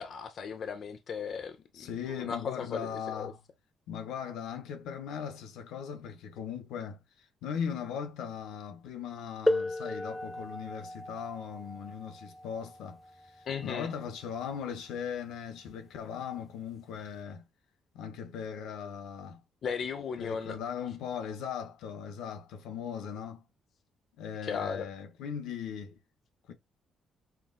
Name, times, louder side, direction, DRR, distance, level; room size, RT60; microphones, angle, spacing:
voice 1, 0.0-1.9 2.3-3.3 13.5-13.9 19.6-20.5 24.5-24.9, left 6 dB, 55° left, 0.7 m, -36 dB
voice 2, 1.7-3.4 3.9-17.5 17.9-19.4 20.2-23.5 24.2-26.0 26.4-26.5, left 7 dB, 90° left, 0.8 m, -39 dB
sound 1, 9.5-14.9 16.0-16.1 16.9-17.1, left 1 dB, 10° left, 0.3 m, -35 dB
5.9 x 2.3 x 2.5 m
cardioid pair, 90°, 0 cm